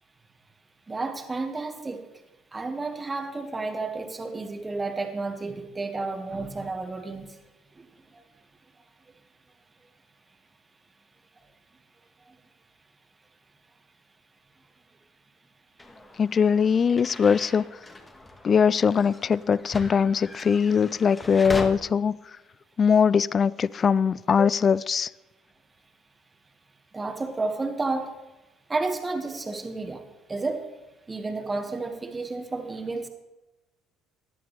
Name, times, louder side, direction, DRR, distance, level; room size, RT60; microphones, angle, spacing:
voice 1, 0.9-2.0 2.5-7.3 7.8-7.9 26.9-28.1 28.7-30.0 30.3-30.7 31.1-33.1, right 3 dB, 25° right, 1.9 m, -31 dB
sound 1, 15.8-21.7, left 2 dB, 20° left, 1.8 m, -40 dB
voice 2, 16.2-17.7 18.4-22.2 22.8-25.1, left 6 dB, 40° left, 0.3 m, -21 dB
16.5 x 11.0 x 3.4 m
hypercardioid pair, 65°, 0 cm